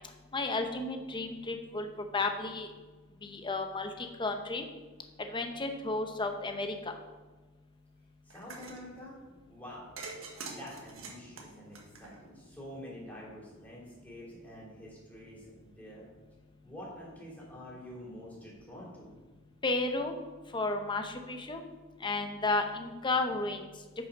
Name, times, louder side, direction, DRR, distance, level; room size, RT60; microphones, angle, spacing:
voice 1, 0.3-1.9 2.1-2.7 3.2-4.6 5.3-6.7 19.6-20.2 20.5-21.6 22.0-23.6, left 3 dB, 25° left, 5 dB, 0.8 m, -32 dB
voice 2, 8.3-9.8 10.5-16.0 16.6-19.1, left 1 dB, 10° left, -6 dB, 3.1 m, -47 dB
sound 1, 8.3-8.8 10.0-12.5, right 4 dB, 80° right, 1.4 m, -44 dB
8.2 x 6.1 x 5.3 m, 1.3 s
head